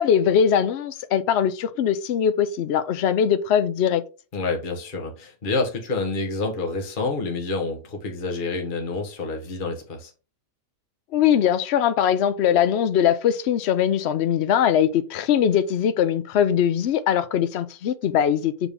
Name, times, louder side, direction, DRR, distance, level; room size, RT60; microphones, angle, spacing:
voice 1, 0.0-4.0 11.1-18.7, left 9 dB, 85° left, 0.5 m, -21 dB
voice 2, 4.3-10.1, left 3 dB, 30° left, 1.3 m, -28 dB
6.9 x 4.1 x 3.5 m
omnidirectional pair, 1.8 m